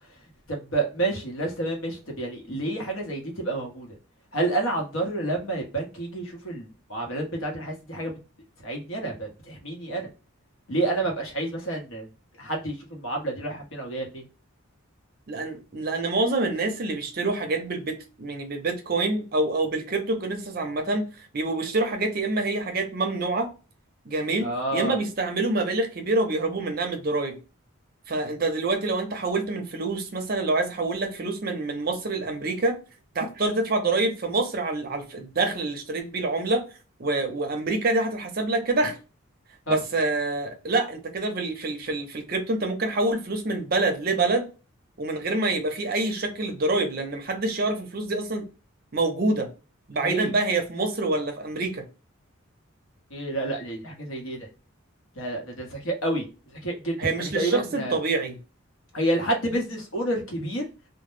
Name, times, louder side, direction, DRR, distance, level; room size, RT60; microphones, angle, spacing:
voice 1, 0.5-4.0 4.3-8.2 8.6-10.1 10.7-12.1 12.4-14.2 24.4-25.0 39.7-39.8 50.0-50.3 53.1-54.4 55.2-56.3 56.5-58.0 58.9-60.7, right 2 dB, 75° left, 0.9 m, -29 dB
voice 2, 15.3-23.5 24.1-27.4 28.1-32.8 33.1-36.6 37.0-39.0 39.7-44.5 45.0-48.5 48.9-49.5 49.9-51.9 57.0-58.4, right 2 dB, 45° right, 0.5 m, -26 dB
2.1 x 2.0 x 3.1 m
head